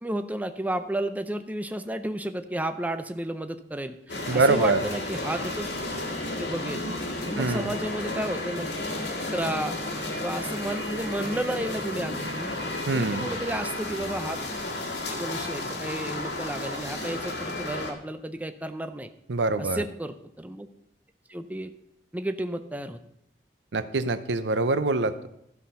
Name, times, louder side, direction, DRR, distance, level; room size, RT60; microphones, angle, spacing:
voice 1, 0.0-5.7 6.4-6.9 7.3-8.7 9.3-9.8 10.1-12.6 12.9-14.4 15.1-19.1 19.6-20.7 21.3-21.7 22.1-23.0, right 1 dB, 10° right, 9 dB, 0.5 m, -32 dB
sound 1, 4.1-17.9, left 2 dB, 85° left, 1.7 m, -32 dB
voice 2, 4.3-4.8 7.4-7.7 12.9-13.3 19.3-19.8 23.7-25.3, right 3 dB, 85° right, 12 dB, 0.7 m, -24 dB
13.0 x 6.0 x 5.5 m, 0.77 s
head